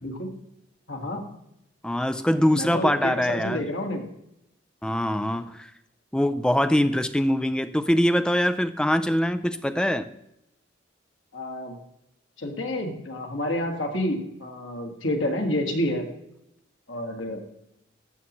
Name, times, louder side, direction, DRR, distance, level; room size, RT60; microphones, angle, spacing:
voice 1, 0.0-0.3 0.9-1.3 2.5-4.0 11.3-11.8 12.4-16.1 16.9-17.4, left 1 dB, 90° left, 2 dB, 1.7 m, -29 dB
voice 2, 1.8-3.6 4.8-5.5 6.1-10.1, equal, 5° left, 11 dB, 0.3 m, -23 dB
12.5 x 7.1 x 3.0 m, 0.82 s
head